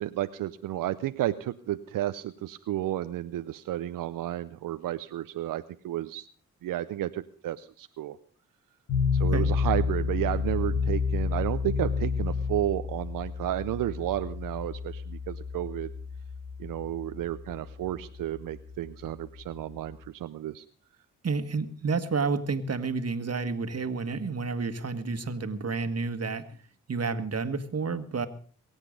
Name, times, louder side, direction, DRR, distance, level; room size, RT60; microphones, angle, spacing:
voice 1, 0.0-6.3 6.6-8.2 9.1-15.9 16.6-20.6, right 13 dB, 90° right, 11 dB, 0.6 m, -32 dB
sound 1, 8.9-20.0, left 5 dB, 85° left, 3.4 m, -30 dB
voice 2, 9.2-9.5 21.2-26.5 26.9-28.3, right 4 dB, 50° right, 9 dB, 1.7 m, -30 dB
23.5 x 8.2 x 5.2 m, 0.43 s
cardioid pair, 55°, 32 cm